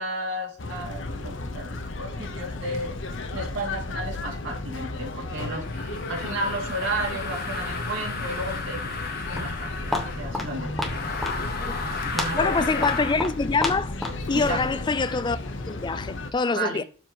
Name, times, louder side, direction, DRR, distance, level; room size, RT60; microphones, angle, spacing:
voice 1, 0.0-3.0 3.3-8.9 9.3-10.9 11.3-11.5 11.8-12.5 14.3-14.7 16.6-16.8, right 1 dB, 70° right, 2.5 m, -33 dB
sound 1, 0.6-16.3, left 2 dB, 70° left, 0.9 m, -34 dB
sound 2, 5.6-10.3 10.8-13.2, left 4 dB, 50° left, 1.4 m, -34 dB
Walk footsteps, 9.0-15.1, left 1 dB, ahead, 1.3 m, -33 dB
voice 2, 12.3-13.9 14.3-15.4 15.7-16.8, left 4 dB, 25° left, 0.4 m, -25 dB
12.5 x 4.6 x 3.0 m
head